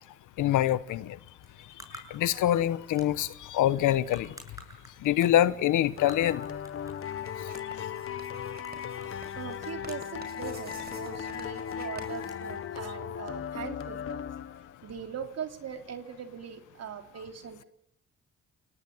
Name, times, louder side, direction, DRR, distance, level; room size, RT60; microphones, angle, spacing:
voice 1, 0.4-1.2 1.6-4.3 5.0-6.5 7.4-7.9, left 12 dB, 80° left, 1.2 m, -26 dB
sound 1, 1.3-13.8, right 1 dB, 10° right, 7.8 m, -54 dB
sound 2, 6.0-14.9, left 8 dB, 45° left, 1.3 m, -37 dB
Writing, 7.2-13.0, right 3 dB, 35° right, 5.5 m, -50 dB
voice 2, 9.4-14.3 14.8-17.6, right 7 dB, 55° right, 3.5 m, -41 dB
30.0 x 18.0 x 9.6 m
cardioid pair, 90°, 30 cm